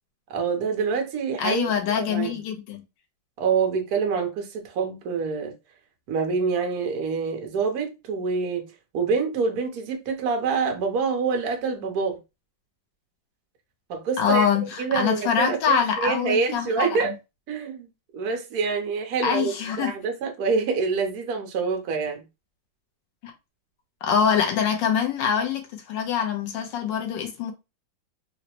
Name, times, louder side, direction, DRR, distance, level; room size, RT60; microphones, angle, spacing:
voice 1, 0.3-1.7 2.0-2.4 3.4-5.5 6.1-8.6 8.9-12.2 13.9-14.5 14.8-17.1 17.5-17.9 18.1-22.2, right 5 dB, 60° right, 1.1 m, -26 dB
voice 2, 1.4-2.8 14.2-17.1 19.2-19.9 23.2-23.3 24.0-27.5, left 7 dB, 75° left, 1.4 m, -24 dB
3.9 x 2.1 x 2.8 m
omnidirectional pair, 2.1 m